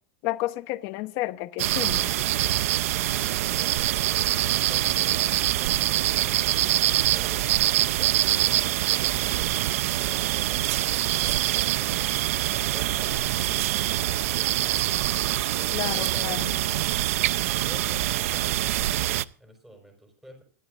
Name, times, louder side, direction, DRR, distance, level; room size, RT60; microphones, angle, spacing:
voice 1, 0.2-2.1 15.7-16.5, left 17 dB, 40° left, 1.0 m, -31 dB
sound 1, 1.6-19.2, right 14 dB, 70° right, 0.7 m, -24 dB
voice 2, 8.0-11.9 15.6-16.9 17.2-20.4, right 1 dB, 5° right, 5.4 m, -49 dB
26.5 x 12.5 x 2.6 m
supercardioid pair, 160°, 8 cm